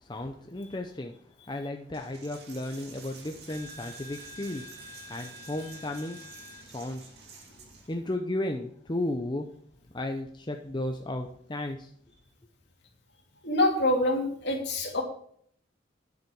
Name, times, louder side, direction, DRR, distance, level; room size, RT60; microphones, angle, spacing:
voice 1, 0.1-1.2 1.5-6.2 6.6-7.3 7.9-9.5 9.9-11.9, left 1 dB, 25° left, 4 dB, 0.7 m, -34 dB
Coin (dropping), 1.9-7.9, right 1 dB, 55° right, 2.3 m, -47 dB
voice 2, 13.4-15.0, left 1 dB, 60° left, 0 dB, 2.8 m, -25 dB
9.9 x 8.2 x 4.7 m, 0.63 s
head